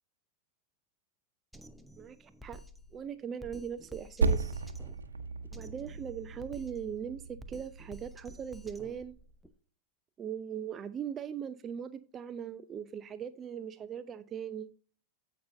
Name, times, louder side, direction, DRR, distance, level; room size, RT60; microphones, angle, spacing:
Drum kit, 1.5-9.5, equal, ahead, 0.8 m, -52 dB
voice 1, 2.0-2.6 2.9-4.6 5.5-9.2 10.2-14.7, right 8 dB, 25° right, 0.5 m, -40 dB
Percussion, 4.2-9.0, right 4 dB, 70° right, 0.9 m, -35 dB
15.5 x 5.4 x 2.7 m
figure-of-eight pair, 90°, 0 cm